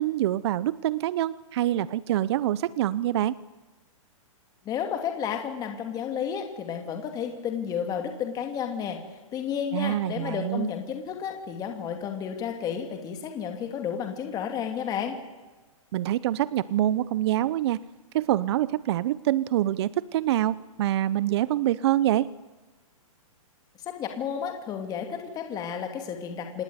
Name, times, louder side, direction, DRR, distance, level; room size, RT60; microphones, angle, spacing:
voice 1, 0.0-3.4 9.7-10.7 15.9-17.8 18.1-22.3, right 13 dB, 50° right, 18 dB, 0.8 m, -25 dB
voice 2, 4.6-9.0 9.3-15.2 23.9-26.6, left 8 dB, 20° left, 4 dB, 2.8 m, -32 dB
26.0 x 20.0 x 9.8 m, 1.3 s
hypercardioid pair, 145°, 18 cm